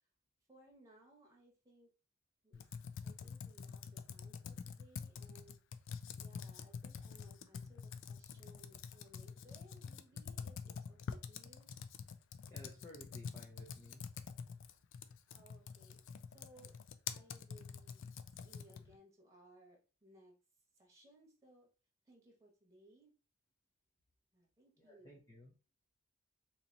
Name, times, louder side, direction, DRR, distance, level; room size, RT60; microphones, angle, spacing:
voice 1, 0.5-1.9 2.4-2.7 3.0-5.6 6.1-11.7 15.3-16.8 17.1-18.1 18.3-20.3 20.8-21.7 22.1-23.1 24.3-25.1, right 1 dB, 15° right, 0 dB, 1.1 m, -64 dB
Computer keyboard, 2.5-19.0, left 6 dB, 60° left, 0.4 m, -47 dB
voice 2, 12.5-14.1 24.8-25.5, left 1 dB, 15° left, -4 dB, 0.7 m, -56 dB
2.9 x 2.8 x 3.8 m, 0.34 s
head